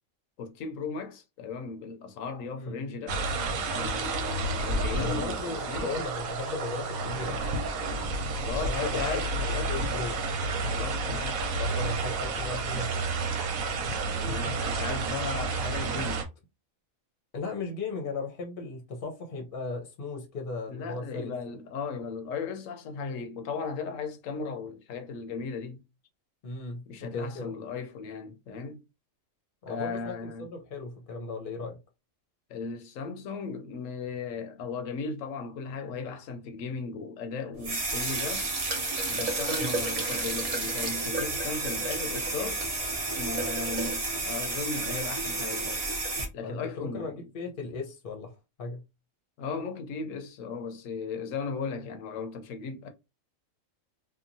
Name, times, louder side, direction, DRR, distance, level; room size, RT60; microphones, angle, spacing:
voice 1, 0.4-3.2 3.7-5.9 8.4-10.0 10.7-11.4 14.2-16.3 20.7-25.8 26.9-28.8 29.7-30.5 32.5-38.5 39.1-42.6 43.1-45.8 46.3-47.2 49.4-52.9, left 5 dB, 75° left, 1.0 m, -36 dB
sound 1, 3.1-16.2, right 3 dB, 90° right, 1.1 m, -30 dB
voice 2, 5.0-7.4 8.5-10.2 11.5-13.0 17.3-21.3 26.4-27.5 29.6-31.8 39.6-39.8 46.4-48.3 48.6-48.8, left 3 dB, 50° left, 0.8 m, -37 dB
sound 2, 37.6-46.3, right 2 dB, 40° right, 0.5 m, -31 dB
2.9 x 2.2 x 2.5 m
omnidirectional pair, 1.4 m